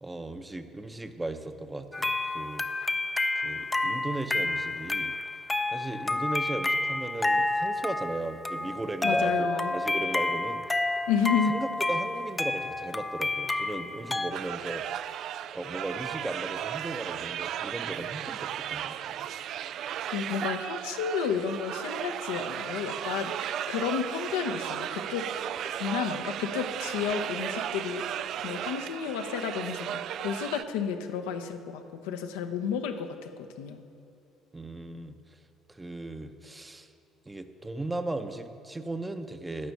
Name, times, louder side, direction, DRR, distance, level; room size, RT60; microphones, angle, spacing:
voice 1, 0.0-2.7 3.4-5.1 5.7-10.8 11.5-15.1 15.5-19.3 34.5-35.4 35.7-36.9 37.2-39.7, right 2 dB, 15° right, 8 dB, 0.8 m, -37 dB
sound 1, 1.9-14.3, left 2 dB, 15° left, 0.6 m, -30 dB
voice 2, 9.0-9.7 11.1-11.6 20.1-25.3 25.8-33.3 33.6-33.8, left 7 dB, 70° left, 6 dB, 0.7 m, -31 dB
sound 2, 14.3-30.6, right 10 dB, 55° right, 0.3 m, -35 dB
16.0 x 6.0 x 6.9 m, 2.4 s
figure-of-eight pair, 55°, 0 cm